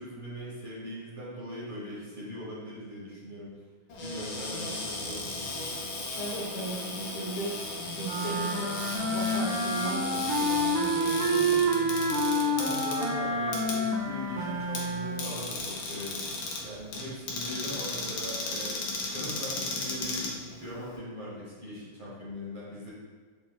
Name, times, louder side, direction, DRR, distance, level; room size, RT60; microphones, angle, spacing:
voice 1, 0.0-3.5 4.0-5.5 12.3-16.3 16.6-22.9, equal, 40° right, -7 dB, 0.7 m, -40 dB
Cupboard open or close, 3.9-21.0, left 2 dB, 80° left, 1.5 m, -36 dB
voice 2, 6.2-7.6 7.9-8.7 9.1-12.2, right 1 dB, 60° left, -6 dB, 0.8 m, -37 dB
sound 1, 8.0-15.4, right 1 dB, 80° right, 1.4 m, -28 dB
5.6 x 3.0 x 2.2 m, 1.5 s
omnidirectional pair, 2.1 m